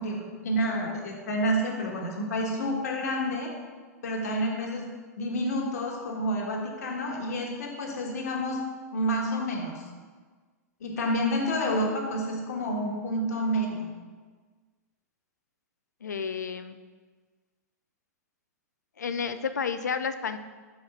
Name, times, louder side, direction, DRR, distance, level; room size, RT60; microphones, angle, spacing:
voice 1, 0.0-3.5 4.0-4.9 5.2-8.6 8.9-9.7 10.8-13.9, equal, 70° left, 0 dB, 1.4 m, -29 dB
voice 2, 16.0-16.8 19.0-20.4, left 6 dB, 90° left, 11 dB, 0.4 m, -31 dB
5.5 x 4.3 x 5.1 m, 1.5 s
hypercardioid pair, 110°, 9 cm